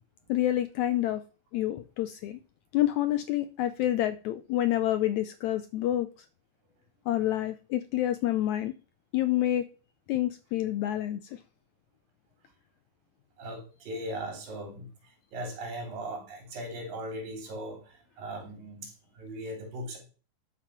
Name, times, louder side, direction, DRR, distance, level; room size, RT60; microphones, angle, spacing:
voice 1, 0.3-1.2 1.5-2.4 2.7-6.3 7.1-8.7 9.1-9.7 10.1-11.4, left 13 dB, 80° left, 12 dB, 1.7 m, -28 dB
voice 2, 13.4-14.9 15.3-20.0, right 1 dB, 85° right, 4 dB, 4.9 m, -38 dB
12.5 x 5.9 x 5.9 m, 0.37 s
omnidirectional pair, 3.9 m